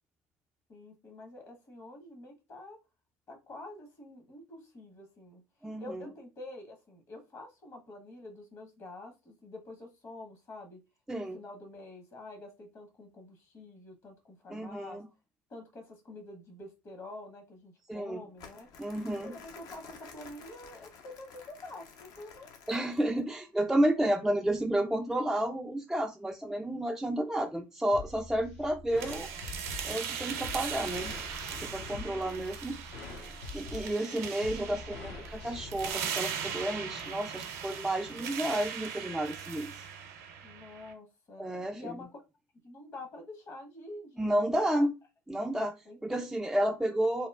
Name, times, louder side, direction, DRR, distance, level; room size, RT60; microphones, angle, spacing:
voice 1, 0.7-2.8 3.3-5.4 5.8-10.8 11.2-15.0 15.5-18.7 19.2-22.5 32.1-33.2 33.6-34.3 40.4-42.1 42.6-44.3 44.6-44.9 45.8-46.9, left 2 dB, 40° left, 4 dB, 1.1 m, -48 dB
voice 2, 5.6-6.0 11.1-11.4 14.5-15.1 17.9-18.2 18.8-19.3 22.7-29.3 29.8-31.1 31.5-32.8 33.5-39.7 41.4-41.9 44.2-44.9 45.3-45.8 46.0-47.3, right 1 dB, 5° right, 3 dB, 0.3 m, -31 dB
Crumpling crinkling, 18.4-23.2, left 6 dB, 55° left, 0.6 m, -52 dB
sound 1, 27.9-35.9, left 4 dB, 75° left, 1.0 m, -45 dB
sound 2, 29.0-40.9, right 7 dB, 75° right, 0.5 m, -39 dB
2.9 x 2.0 x 2.3 m, 0.26 s
hypercardioid pair, 70°, 8 cm